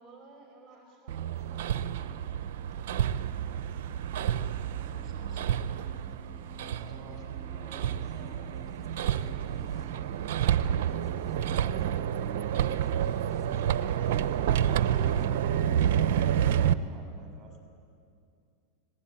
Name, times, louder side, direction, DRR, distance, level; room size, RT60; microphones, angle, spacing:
voice 1, 0.0-2.6 5.1-5.3 6.7-10.3 13.7-14.1, right 2 dB, 15° right, -1 dB, 5.3 m, -55 dB
Hammer, 1.1-16.7, right 10 dB, 65° right, 0.9 m, -29 dB
sound 1, 4.2-16.6, left 3 dB, 30° left, 4.1 m, -54 dB
voice 2, 4.8-7.7 15.9-17.6, right 3 dB, 35° right, 4 dB, 7.3 m, -53 dB
26.0 x 20.0 x 8.8 m, 2.4 s
hypercardioid pair, 95°, 0 cm